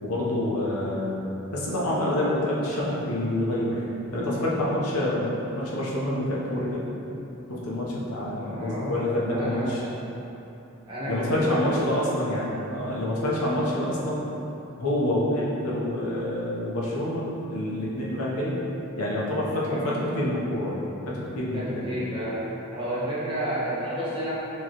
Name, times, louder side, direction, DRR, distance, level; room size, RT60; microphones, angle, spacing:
voice 1, 0.0-1.2 1.5-3.8 4.1-6.8 7.5-9.8 11.1-14.2 14.8-18.6 19.0-20.8 21.0-21.9, left 1 dB, 85° left, -6 dB, 0.8 m, -27 dB
voice 2, 8.4-9.8 10.9-12.0 19.6-20.0 21.5-22.4 22.7-24.3, equal, 20° right, -10 dB, 1.0 m, -31 dB
4.6 x 3.1 x 2.9 m, 3.0 s
head